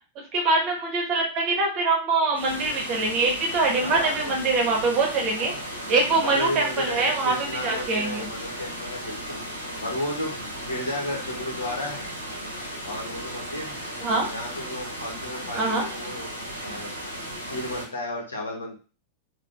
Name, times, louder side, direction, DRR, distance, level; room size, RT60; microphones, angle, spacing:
voice 1, 0.1-5.5 5.9-8.3 14.0-14.3 15.5-15.9, right 3 dB, 35° right, 0 dB, 1.4 m, -24 dB
sound 1, 2.3-17.8, equal, 85° right, 1.2 m, -36 dB
voice 2, 3.7-4.4 5.3-5.6 6.1-12.1 12.8-13.9 14.3-16.3 16.6-16.9 17.5-18.8, left 1 dB, 75° left, 0 dB, 1.3 m, -33 dB
3.9 x 3.1 x 3.4 m, 0.35 s
figure-of-eight pair, 90°, 0 cm